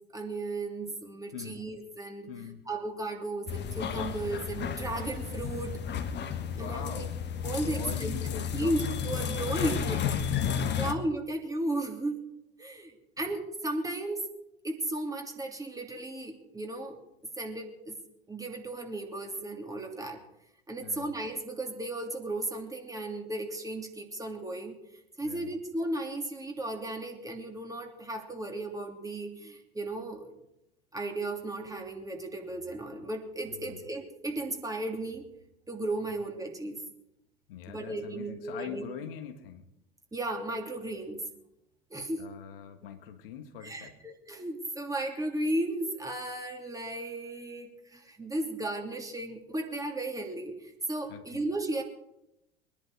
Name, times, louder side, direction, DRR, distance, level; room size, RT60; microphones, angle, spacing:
voice 1, 0.1-2.3 2.7-5.8 6.6-7.0 7.4-8.2 8.5-10.4 10.7-12.2 12.6-12.9 13.2-14.3 14.6-17.0 17.4-18.0 18.3-20.2 20.7-24.8 25.2-30.3 30.9-35.3 35.7-36.8 37.7-38.8 40.1-41.2 41.9-42.3 43.6-51.8, right 2 dB, 10° right, 2 dB, 3.0 m, -35 dB
voice 2, 2.3-2.6 6.2-7.2 7.7-8.7 10.2-10.9 13.2-13.3 20.8-21.1 25.2-25.5 33.5-33.8 37.5-39.7 42.2-44.0 51.1-51.5, left 8 dB, 65° left, 6 dB, 1.8 m, -43 dB
sound 1, 3.5-10.9, left 8 dB, 35° left, 1.7 m, -32 dB
23.5 x 11.0 x 4.8 m, 0.84 s
figure-of-eight pair, 75°, 31 cm